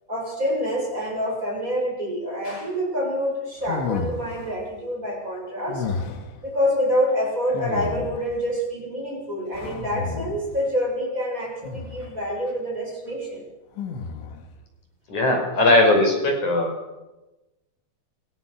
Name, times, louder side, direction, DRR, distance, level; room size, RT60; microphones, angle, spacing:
voice 1, 0.1-5.9 6.4-13.5, equal, 15° right, -1 dB, 7.6 m, -26 dB
sound 1, 3.6-4.6 5.7-6.4 7.5-8.4 9.5-10.6 11.6-12.2 13.8-14.5, left 4 dB, 70° left, 4.4 m, -31 dB
voice 2, 15.1-16.7, left 2 dB, 40° left, 3 dB, 6.7 m, -19 dB
28.5 x 25.0 x 6.4 m, 1.1 s
omnidirectional pair, 5.5 m